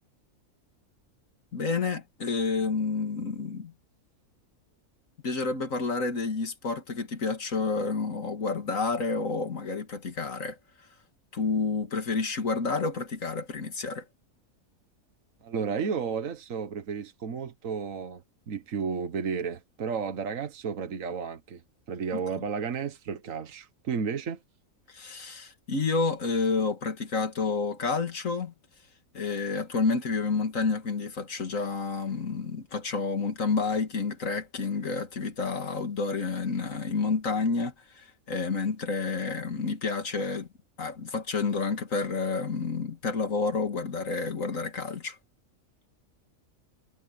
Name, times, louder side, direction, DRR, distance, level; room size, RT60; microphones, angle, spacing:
voice 1, 1.5-3.7 5.2-10.6 11.3-14.1 24.9-28.5 29.1-40.5 40.8-45.2, left 4 dB, 70° left, 2.5 m, -29 dB
voice 2, 15.4-21.6 21.9-24.4, right 6 dB, 70° right, 1.6 m, -33 dB
omnidirectional pair, 1.5 m